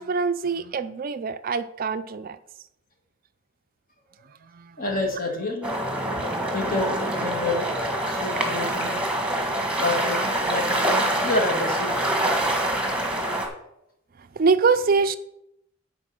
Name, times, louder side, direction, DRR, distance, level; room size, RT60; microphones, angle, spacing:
voice 1, 0.0-2.4 4.5-4.8 6.2-6.3 14.4-15.2, right 4 dB, 45° right, 0.4 m, -24 dB
voice 2, 4.8-5.7 6.5-7.7 8.1-9.0 9.8-12.1, left 2 dB, 45° left, 1.9 m, -28 dB
sound 1, 5.6-13.5, right 1 dB, 5° right, 1.5 m, -25 dB
10.5 x 4.6 x 6.1 m
head